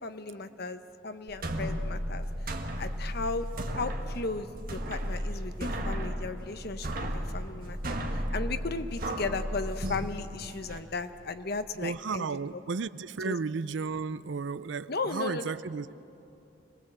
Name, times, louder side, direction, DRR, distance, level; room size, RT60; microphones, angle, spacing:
voice 1, 0.0-3.4 3.8-12.6 13.2-13.4 14.9-15.5, left 3 dB, 55° left, 10 dB, 1.0 m, -36 dB
sound 1, 1.3-10.8, equal, 50° right, 1.6 m, -34 dB
voice 2, 11.8-15.9, right 4 dB, 70° right, 17 dB, 0.5 m, -33 dB
26.0 x 19.5 x 7.9 m, 2.9 s
head